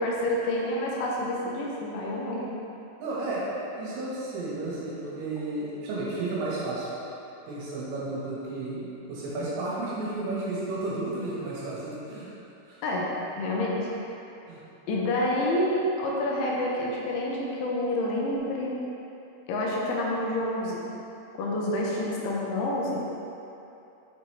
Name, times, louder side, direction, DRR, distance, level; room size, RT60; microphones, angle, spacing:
voice 1, 0.0-2.6 12.8-13.8 14.9-18.8 19.5-20.8 21.3-23.0, left 1 dB, 80° left, -3 dB, 3.1 m, -28 dB
voice 2, 3.0-3.5 3.8-6.9 7.5-12.3 12.7-12.8 14.5-14.6, right 2 dB, 75° right, -7 dB, 3.5 m, -32 dB
7.9 x 4.9 x 3.3 m, 2.9 s
omnidirectional pair, 5.5 m